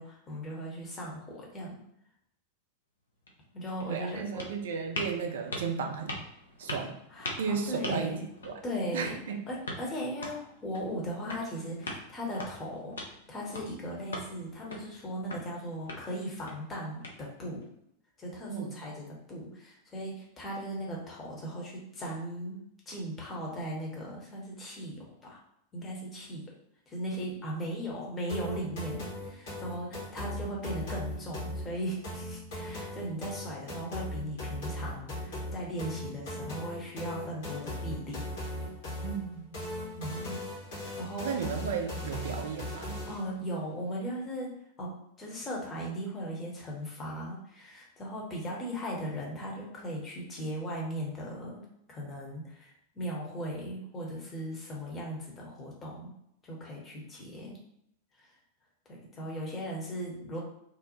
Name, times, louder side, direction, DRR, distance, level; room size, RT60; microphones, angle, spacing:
voice 1, 0.0-1.8 3.5-4.5 7.1-8.2 8.6-9.2 9.5-17.7 18.2-25.4 25.7-26.5 26.9-38.2 40.0-40.4 40.9-41.3 41.8-41.9 43.0-56.1 56.4-57.6 58.2-58.3 58.9-60.4, equal, 20° left, -3 dB, 0.8 m, -38 dB
sound 1, 3.1-17.6, left 1 dB, 70° left, 0.5 m, -43 dB
voice 2, 3.9-6.2 6.6-6.9 7.4-8.2 8.4-8.6 8.9-9.4 18.5-18.7 39.0-39.5 41.2-43.0, right 6 dB, 60° right, 4 dB, 0.3 m, -34 dB
sound 2, 28.3-43.3, left 1 dB, 55° left, 0.9 m, -38 dB
2.5 x 2.0 x 2.9 m, 0.77 s
figure-of-eight pair, 90°, 0 cm